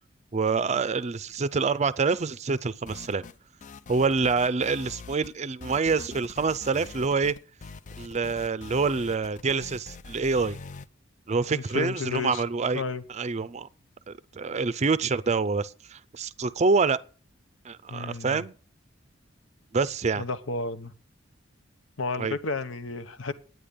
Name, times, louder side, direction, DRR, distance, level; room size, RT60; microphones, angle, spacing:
voice 1, 0.3-3.3 3.9-7.4 8.0-10.6 11.3-12.8 13.1-13.7 14.1-17.0 17.6-18.5 19.7-20.2 22.2-22.4, right 4 dB, 35° right, 0.5 m, -26 dB
sound 1, 2.9-3.4 3.6-5.3 5.6-10.9, left 4 dB, 40° left, 0.5 m, -44 dB
voice 2, 11.5-12.4 12.7-13.0 17.9-18.4 20.2-20.9 22.0-23.3, left 3 dB, 80° left, 1.0 m, -32 dB
10.0 x 9.4 x 5.2 m
head